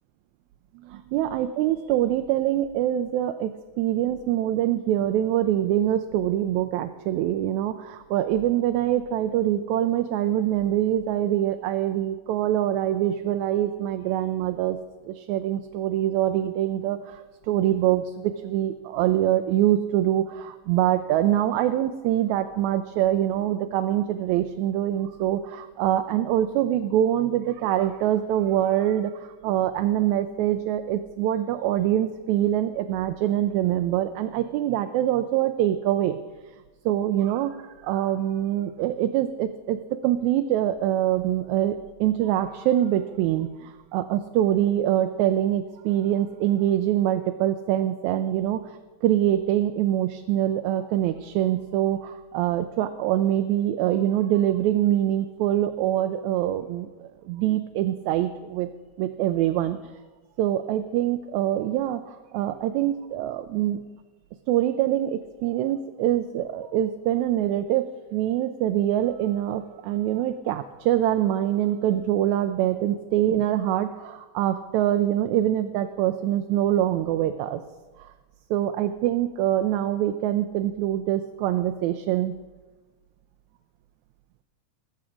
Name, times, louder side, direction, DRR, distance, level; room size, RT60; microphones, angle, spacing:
voice 1, 0.9-3.5 3.8-14.8 15.1-36.2 36.9-37.5 37.8-39.8 40.0-48.6 49.0-58.7 59.0-59.8 60.4-63.8 64.5-67.9 68.1-77.6 78.0-78.1 78.5-82.4, right 12 dB, 80° right, 8 dB, 1.9 m, -24 dB
20.0 x 7.4 x 5.0 m, 1.3 s
omnidirectional pair, 3.4 m